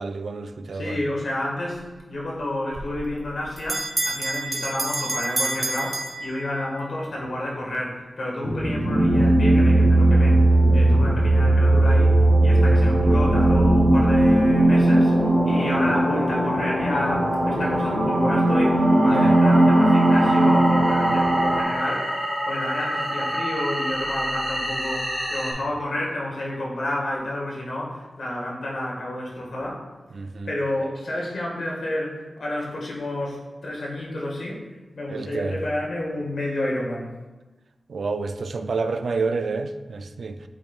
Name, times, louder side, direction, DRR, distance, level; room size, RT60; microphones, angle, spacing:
voice 1, 0.0-1.0 19.1-19.3 30.1-30.5 35.1-35.6 37.9-40.4, right 4 dB, 75° right, 0.3 m, -29 dB
voice 2, 0.7-1.8 2.1-10.4 10.7-12.1 12.4-22.1 22.4-29.8 30.5-33.4 33.6-34.6 34.9-37.1, left 1 dB, 80° left, 1.6 m, -30 dB
Bell, 2.7-6.8, right 2 dB, 35° right, 1.1 m, -29 dB
sound 1, 8.4-25.5, right 1 dB, 5° left, 2.0 m, -22 dB
sound 2, 8.9-21.6, right 1 dB, 60° right, 1.0 m, -20 dB
8.0 x 5.2 x 2.4 m
wide cardioid pair, 90°, 0 cm